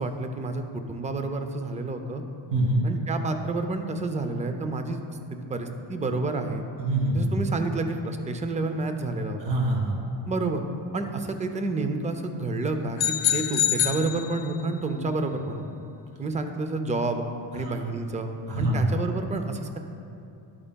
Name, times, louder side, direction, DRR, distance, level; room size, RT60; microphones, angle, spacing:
voice 1, 0.0-2.2 2.8-5.0 5.3-6.6 7.1-9.5 10.3-10.6 10.9-13.0 13.3-15.6 16.2-17.2 17.5-18.3 18.6-19.8, right 3 dB, 15° right, 6 dB, 0.4 m, -29 dB
voice 2, 2.5-2.9 6.8-7.3 9.4-10.1 17.5-17.8 18.5-18.9, right 1 dB, 55° right, -1 dB, 1.8 m, -25 dB
sound 1, 13.0-14.8, left 11 dB, 70° left, 0.9 m, -26 dB
12.0 x 8.7 x 2.2 m, 2.6 s
cardioid pair, 145°, 49 cm